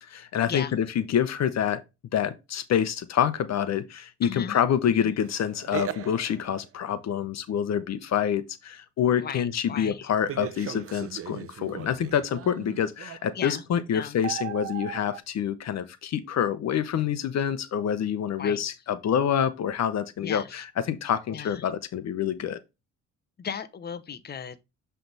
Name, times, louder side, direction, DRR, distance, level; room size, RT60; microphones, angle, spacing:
voice 1, 0.0-1.8 2.1-22.6, left 9 dB, 60° left, 0.8 m, -27 dB
voice 2, 4.2-4.6 5.0-5.1 9.2-10.1 13.3-13.6 13.9-14.2 18.4-18.6 20.2-20.6 21.3-21.7 23.4-24.6, left 7 dB, 35° left, 0.8 m, -36 dB
sound 1, 5.2-6.6 10.3-13.4 14.2-15.2, right 11 dB, 50° right, 0.6 m, -38 dB
7.6 x 3.4 x 4.0 m
cardioid pair, 90°, 30 cm